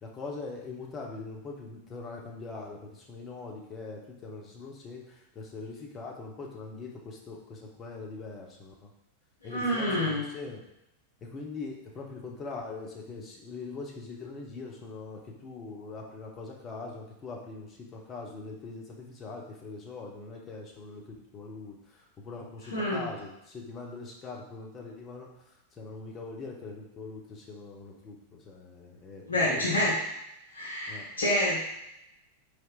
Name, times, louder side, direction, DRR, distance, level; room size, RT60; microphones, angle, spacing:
voice 1, 0.0-8.9 9.4-10.6 11.2-21.7 22.2-25.3 25.8-29.8 30.9-31.1, left 3 dB, 25° left, -1 dB, 0.8 m, -42 dB
voice 2, 9.4-10.2 22.7-23.1 29.3-30.0 30.5-31.6, left 1 dB, 75° left, -6 dB, 1.2 m, -27 dB
4.4 x 3.4 x 2.4 m, 0.85 s
figure-of-eight pair, 90°, 0 cm